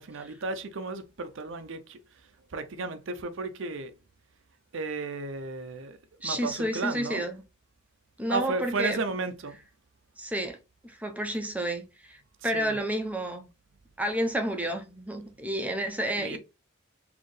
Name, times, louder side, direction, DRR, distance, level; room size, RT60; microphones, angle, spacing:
voice 1, 0.0-2.0 2.5-3.9 4.7-6.0 6.2-7.2 8.3-9.6 12.4-12.8 16.2-16.4, right 3 dB, 65° right, 0.6 m, -33 dB
voice 2, 6.2-7.4 8.2-9.0 10.2-10.6 10.8-12.2 12.4-13.5 14.0-16.4, right 1 dB, 5° right, 0.7 m, -30 dB
4.3 x 2.8 x 3.2 m
head